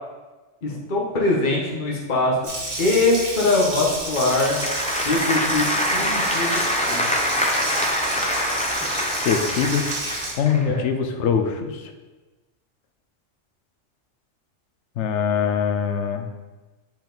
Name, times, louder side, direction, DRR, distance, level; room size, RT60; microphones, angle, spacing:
voice 1, 0.6-2.4 2.8-4.6 5.0-6.6 6.9-7.1 10.6-10.8, left 2 dB, 40° left, -2 dB, 1.3 m, -22 dB
Water tap faucet, 2.4-10.3, right 2 dB, 70° right, 1.9 m, -30 dB
Applause / Crowd, 3.9-10.6, equal, 10° left, 0.4 m, -25 dB
voice 2, 9.3-9.8 10.4-11.8 15.0-16.3, left 7 dB, 70° left, 6 dB, 1.0 m, -22 dB
7.1 x 4.7 x 3.9 m, 1.2 s
omnidirectional pair, 1.3 m